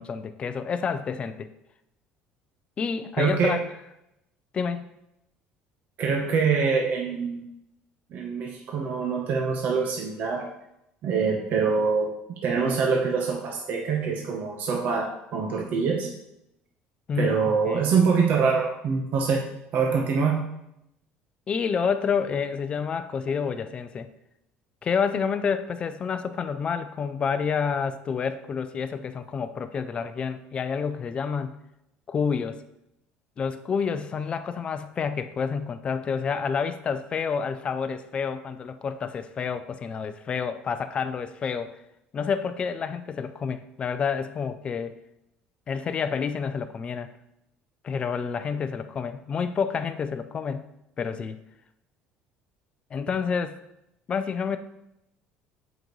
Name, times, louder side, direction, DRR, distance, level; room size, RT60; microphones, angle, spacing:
voice 1, 0.0-1.5 2.8-3.6 4.5-4.8 17.1-17.9 21.5-24.1 24.8-31.6 32.1-32.6 33.4-41.7 42.1-44.9 45.7-47.1 47.8-50.7 51.0-51.4 52.9-53.6 54.1-54.6, left 6 dB, 30° left, 9 dB, 0.4 m, -29 dB
voice 2, 3.2-3.6 6.0-7.4 8.1-10.4 11.0-12.1 12.4-16.1 17.2-19.4 19.7-20.5, right 5 dB, 50° right, 0 dB, 0.9 m, -24 dB
7.5 x 5.1 x 3.1 m, 0.83 s
cardioid pair, 145°, 4 cm